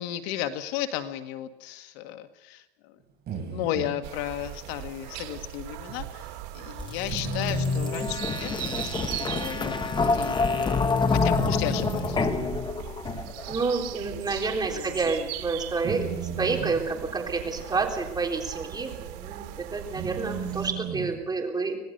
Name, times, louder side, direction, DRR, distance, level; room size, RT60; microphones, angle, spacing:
voice 1, 0.0-2.9 3.5-10.8 11.2-12.5 14.6-15.3, left 12 dB, 65° left, 7 dB, 1.8 m, -34 dB
sound 1, 3.3-4.0 5.9-6.0 7.1-8.1 8.8-8.9 9.5-9.6 11.3-12.4 13.5-13.6 14.1-14.2 15.8-16.8 17.7-17.9 18.8-19.0 20.0-21.2, right 7 dB, 30° right, 5.1 m, -34 dB
sound 2, 4.0-20.7, right 13 dB, 60° right, 2.7 m, -39 dB
sound 3, 6.8-13.5, left 4 dB, 15° left, 1.1 m, -27 dB
voice 2, 13.5-16.1 16.4-21.8, right 4 dB, 10° right, 1 dB, 3.7 m, -29 dB
26.0 x 18.0 x 6.7 m, 0.95 s
supercardioid pair, 155°, 34 cm